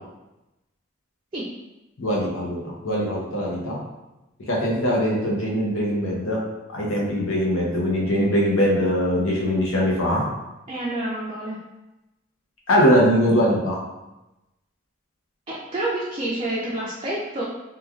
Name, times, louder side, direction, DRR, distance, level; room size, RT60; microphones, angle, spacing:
voice 1, 2.0-3.8 4.5-6.4 6.7-10.2 12.7-13.8, equal, 80° left, -3 dB, 0.7 m, -21 dB
voice 2, 10.7-11.6 15.5-17.4, right 1 dB, 25° right, -7 dB, 0.4 m, -28 dB
3.1 x 2.3 x 2.3 m, 0.98 s
head